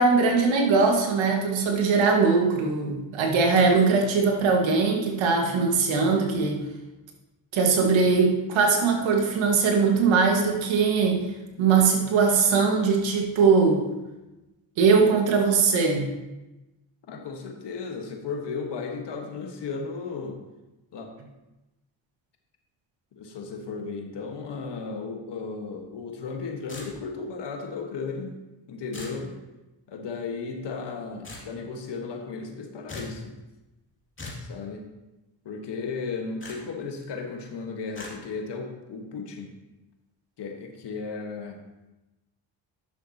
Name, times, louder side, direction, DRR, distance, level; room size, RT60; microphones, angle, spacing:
voice 1, 0.0-6.6 7.5-11.2 11.6-13.8 14.8-16.1, right 4 dB, 80° right, 1 dB, 1.7 m, -21 dB
voice 2, 17.1-20.4 20.9-21.1 23.1-28.3 28.7-29.3 29.9-33.3 34.4-34.8 35.4-39.5 40.4-41.6, left 4 dB, 65° left, 3 dB, 1.5 m, -35 dB
sound 1, 26.7-27.2 28.9-29.2 31.2-31.5 32.9-33.2 34.2-34.5 36.4-36.6 37.9-38.1, left 2 dB, 25° left, 2.5 m, -39 dB
11.0 x 6.5 x 2.9 m, 1.0 s
cardioid pair, 75°, 46 cm